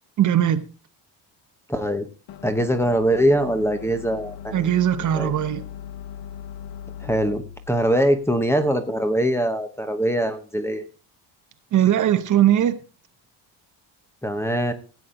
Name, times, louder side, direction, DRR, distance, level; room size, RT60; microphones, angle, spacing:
voice 1, 0.2-0.6 4.5-5.6 11.7-12.8, right 11 dB, 45° right, 0.9 m, -19 dB
voice 2, 1.7-2.1 2.4-4.7 5.1-5.3 7.0-10.9 14.2-14.7, equal, 5° left, 0.9 m, -22 dB
sound 1, 2.3-9.4, left 9 dB, 85° left, 1.2 m, -40 dB
17.0 x 8.6 x 3.7 m
cardioid pair, 170°, 43 cm